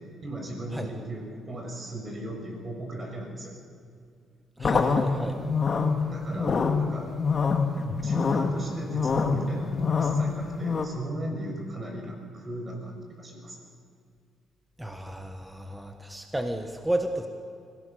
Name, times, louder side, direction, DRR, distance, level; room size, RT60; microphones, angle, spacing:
voice 1, 0.2-3.5 6.1-7.1 8.0-13.7, right 1 dB, 35° right, 1 dB, 6.4 m, -37 dB
sound 1, 4.6-10.9, left 4 dB, 40° left, 2.0 m, -26 dB
voice 2, 4.6-5.4 14.8-17.3, right 1 dB, 5° right, 5 dB, 1.5 m, -32 dB
24.5 x 17.5 x 6.9 m, 2.3 s
cardioid pair, 90°, 0 cm